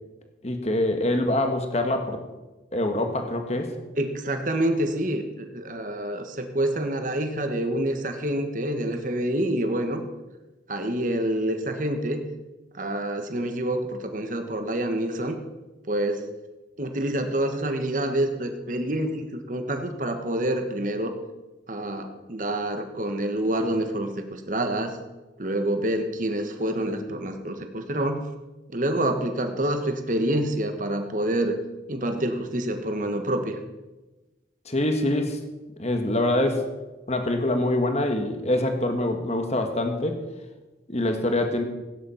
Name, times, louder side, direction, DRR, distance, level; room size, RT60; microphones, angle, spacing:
voice 1, 0.4-2.2 2.7-3.7 34.6-35.4 35.8-36.7 37.1-40.2 40.9-41.6, left 1 dB, 35° left, 5 dB, 1.6 m, -25 dB
voice 2, 4.0-10.0 10.7-12.2 12.7-15.4 15.9-16.3 16.8-21.1 21.7-25.0 25.4-28.2 28.7-31.6 31.9-33.6, right 1 dB, 45° right, 6 dB, 1.5 m, -27 dB
16.5 x 9.9 x 5.8 m, 1.1 s
head